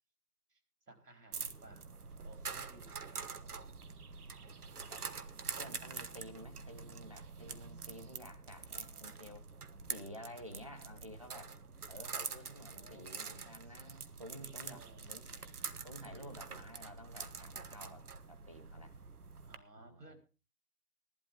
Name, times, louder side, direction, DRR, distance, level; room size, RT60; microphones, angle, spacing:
voice 1, 0.9-1.8 2.2-3.3 4.4-4.9 9.9-10.4 12.4-13.1 14.4-15.1 16.1-16.4 19.4-20.2, right 2 dB, 85° right, 6 dB, 4.2 m, -59 dB
sound 1, 1.3-19.6, right 5 dB, 70° right, 1.3 m, -46 dB
voice 2, 5.6-9.5 9.9-11.5 11.9-15.3 15.8-19.0 19.8-20.2, equal, 20° right, 2 dB, 0.7 m, -52 dB
17.5 x 11.5 x 3.6 m, 0.33 s
figure-of-eight pair, 160°, 47 cm